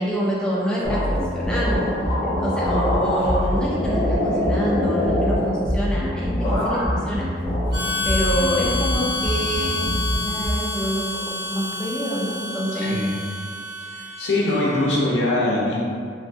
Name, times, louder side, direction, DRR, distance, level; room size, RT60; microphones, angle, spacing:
voice 1, 0.0-1.8 2.2-7.3 8.0-10.0 10.3-11.1 11.5-13.1, equal, 5° left, -7 dB, 0.4 m, -26 dB
sound 1, 0.8-6.0 6.4-7.1 7.4-8.3, left 1 dB, 30° left, 0.8 m, -26 dB
sound 2, 0.8-10.5, equal, 50° right, 0.6 m, -26 dB
Harmonica, 7.7-15.0, left 2 dB, 75° right, 1.0 m, -29 dB
voice 2, 12.8-13.1 13.9-15.8, left 2 dB, 75° left, -5 dB, 0.6 m, -22 dB
2.6 x 2.5 x 2.2 m, 2.2 s
head